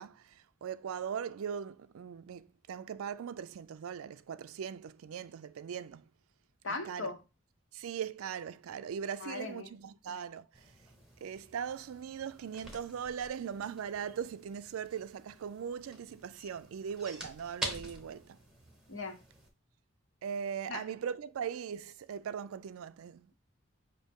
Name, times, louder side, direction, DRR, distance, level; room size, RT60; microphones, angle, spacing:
voice 1, 0.0-6.1 6.8-7.1 7.7-10.7 11.2-18.4 20.2-23.3, right 7 dB, 90° right, 0.4 m, -40 dB
voice 2, 6.6-7.2 9.2-9.7 18.9-19.2 20.7-20.8, left 3 dB, 65° left, 0.9 m, -38 dB
sound 1, 10.5-19.5, right 1 dB, 5° right, 0.9 m, -47 dB
5.4 x 2.7 x 3.5 m
head